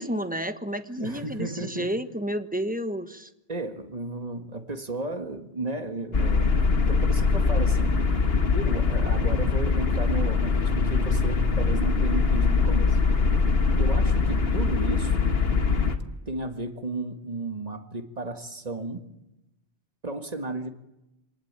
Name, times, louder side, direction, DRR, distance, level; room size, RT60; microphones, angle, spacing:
voice 1, 0.0-3.3, equal, 10° right, 1.2 m, -31 dB
voice 2, 1.0-1.9 3.5-7.9 8.5-13.0 13.8-15.3 16.3-19.0 20.0-20.7, right 2 dB, 35° right, 2.0 m, -33 dB
sound 1, 6.1-16.0, left 4 dB, 60° left, 1.9 m, -22 dB
24.5 x 19.5 x 8.9 m
omnidirectional pair, 1.1 m